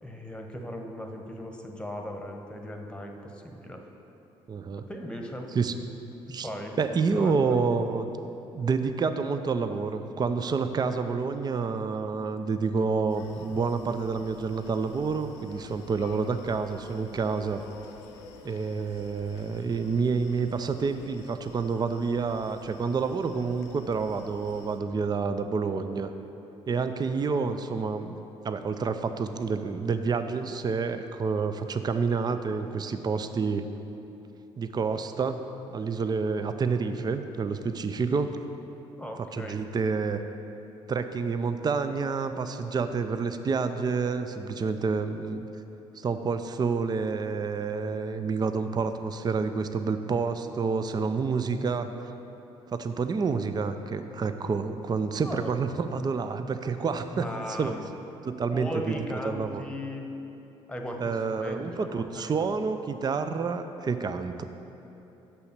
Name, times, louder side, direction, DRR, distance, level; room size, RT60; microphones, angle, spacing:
voice 1, 0.0-3.8 4.9-5.5 6.3-6.7 7.1-7.6 39.0-39.6 55.2-55.5 57.1-57.8 58.5-60.1 60.7-62.5, equal, 5° left, 3 dB, 1.2 m, -37 dB
voice 2, 4.5-4.8 5.5-5.7 6.3-6.5 6.8-8.1 8.5-17.6 18.4-26.1 26.7-28.1 28.4-33.7 34.6-35.4 35.7-38.4 39.3-40.2 40.9-45.5 45.9-51.9 52.7-57.7 58.2-59.0 59.2-59.6 61.0-64.4, right 5 dB, 30° right, 9 dB, 0.5 m, -28 dB
Screaming, 13.1-24.8, left 5 dB, 80° left, 0.6 m, -50 dB
6.9 x 5.8 x 6.7 m, 3.0 s
hypercardioid pair, 50°, 14 cm